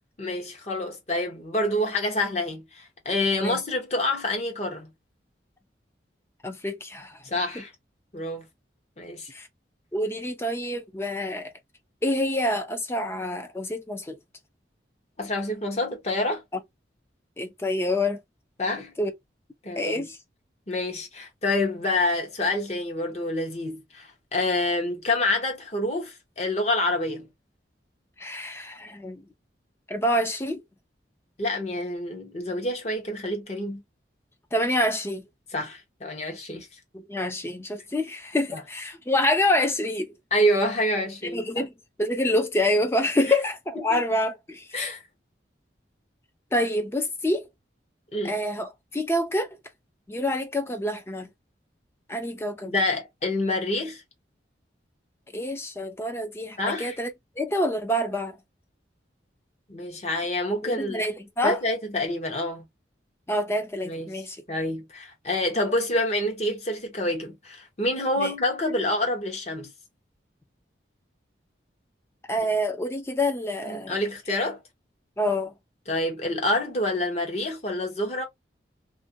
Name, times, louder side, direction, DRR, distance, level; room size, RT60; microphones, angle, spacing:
voice 1, 0.2-4.9 7.3-7.7 8.1-8.5 9.0-9.3 15.2-16.4 18.6-18.9 19.6-20.0 20.7-27.3 31.4-33.8 35.5-36.7 38.5-38.6 40.3-41.4 43.9-44.0 44.7-45.0 48.1-48.4 52.6-54.0 56.6-57.0 59.7-61.1 61.4-62.7 63.8-64.1 64.5-69.7 73.7-74.6 75.9-78.2, left 1 dB, 35° left, 0.8 m, -27 dB
voice 2, 6.4-7.2 7.5-7.6 9.3-9.5 9.9-11.5 12.0-14.2 17.4-18.2 19.0-19.1 19.8-20.2 28.2-29.2 29.9-30.6 34.5-35.2 36.9-40.1 41.2-41.7 42.0-44.7 46.5-47.4 48.2-49.5 50.1-51.3 52.1-52.7 55.3-58.4 60.6-61.6 63.3-64.4 68.2-68.3 72.3-74.0 75.2-75.5, left 1 dB, 15° left, 0.4 m, -27 dB
2.5 x 2.1 x 2.6 m
head